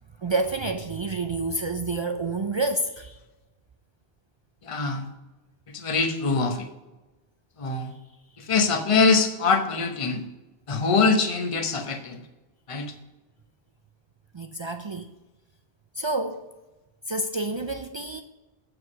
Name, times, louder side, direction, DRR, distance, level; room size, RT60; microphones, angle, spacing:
voice 1, 0.2-3.2 14.3-15.1 15.9-16.5 17.1-18.2, right 2 dB, 50° right, 0.3 m, -28 dB
voice 2, 4.6-5.1 5.7-6.7 7.6-7.9 8.4-10.2 10.7-12.2 12.7-12.9, left 4 dB, 35° left, 0.8 m, -23 dB
8.0 x 4.9 x 6.0 m
omnidirectional pair, 1.0 m